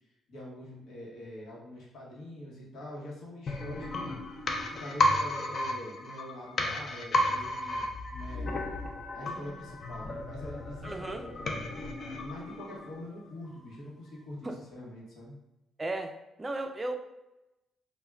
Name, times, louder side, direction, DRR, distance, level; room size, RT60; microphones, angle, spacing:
voice 1, 0.3-4.2 4.7-8.7 9.1-15.4, left 1 dB, 70° left, -5 dB, 0.9 m, -44 dB
sound 1, 3.5-13.2 13.5-13.6, left 1 dB, 50° left, 0.4 m, -33 dB
voice 2, 10.8-11.3 14.4-14.6 15.8-17.0, right 2 dB, 20° right, 6 dB, 0.3 m, -35 dB
3.3 x 2.1 x 2.3 m, 0.96 s
cardioid pair, 90°, 0 cm